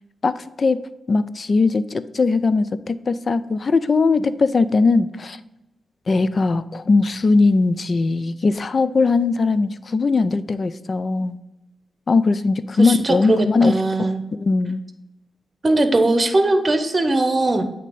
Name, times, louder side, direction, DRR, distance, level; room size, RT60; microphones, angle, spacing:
voice 1, 0.2-0.8 1.1-5.4 6.1-11.4 12.1-14.8, left 3 dB, 50° left, 14 dB, 0.4 m, -20 dB
voice 2, 12.8-14.2 15.6-17.6, right 2 dB, 35° right, 8 dB, 0.8 m, -19 dB
8.2 x 2.8 x 5.3 m, 0.97 s
cardioid pair, 55°, 0 cm